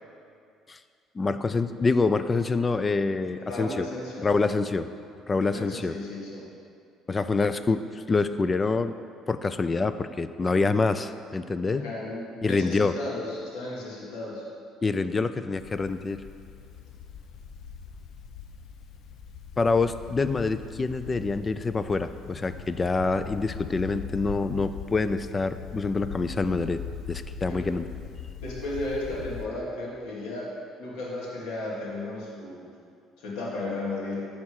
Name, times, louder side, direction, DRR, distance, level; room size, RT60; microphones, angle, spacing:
voice 1, 1.1-3.9 4.2-4.9 5.3-5.9 7.1-8.9 9.3-11.9 12.4-12.9 14.8-16.2 19.6-26.8 27.1-27.9, left 3 dB, 25° left, 12 dB, 0.3 m, -26 dB
voice 2, 3.4-4.5 5.3-6.5 11.7-14.4 27.4-27.6 28.4-30.5 30.8-32.6 33.2-34.2, left 2 dB, 80° left, -5 dB, 2.3 m, -34 dB
sound 1, 15.6-29.5, left 7 dB, 65° left, 0.7 m, -41 dB
12.0 x 4.3 x 4.8 m, 2.3 s
cardioid pair, 110°, 0 cm